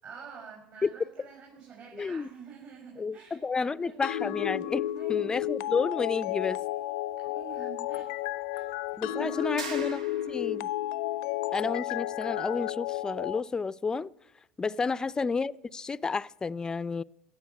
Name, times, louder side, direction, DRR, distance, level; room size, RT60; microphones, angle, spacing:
voice 1, 0.0-4.0 4.9-5.2 7.2-8.1 8.5-8.7 9.1-9.8 14.8-15.0, right 6 dB, 55° right, 6.1 m, -48 dB
voice 2, 1.9-2.3 3.0-6.6 9.0-10.7 11.5-14.1 14.6-17.0, left 4 dB, 20° left, 0.4 m, -31 dB
sound 1, 4.0-13.4, left 14 dB, 70° left, 0.6 m, -32 dB
sound 2, 9.6-10.7, right 4 dB, 90° right, 1.5 m, -41 dB
17.0 x 7.2 x 9.5 m
hypercardioid pair, 85°, 4 cm